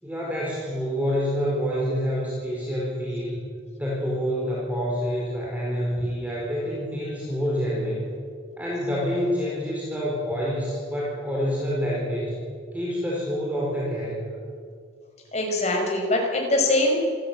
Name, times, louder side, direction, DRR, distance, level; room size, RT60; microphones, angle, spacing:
voice 1, 0.0-3.5 3.8-8.0 8.6-12.4 12.7-14.4, equal, 10° right, -5 dB, 4.2 m, -27 dB
voice 2, 15.3-16.9, left 2 dB, 35° left, 1 dB, 5.2 m, -22 dB
27.0 x 14.0 x 8.7 m, 2.2 s
head